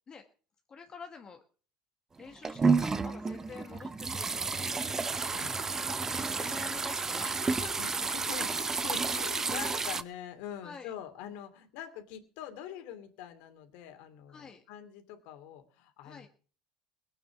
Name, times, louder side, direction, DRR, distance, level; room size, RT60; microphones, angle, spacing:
voice 1, 0.7-1.4 2.2-5.1 6.1-7.8 10.6-10.9 14.3-14.6 16.0-16.3, left 5 dB, 25° left, 5 dB, 1.5 m, -48 dB
sound 1, 2.2-10.0, right 4 dB, 15° right, 0.6 m, -31 dB
voice 2, 5.3-5.9 6.4-6.5 7.8-16.3, left 9 dB, 70° left, 6 dB, 2.7 m, -44 dB
19.0 x 8.7 x 6.0 m, 0.40 s
cardioid pair, 140°, 3 cm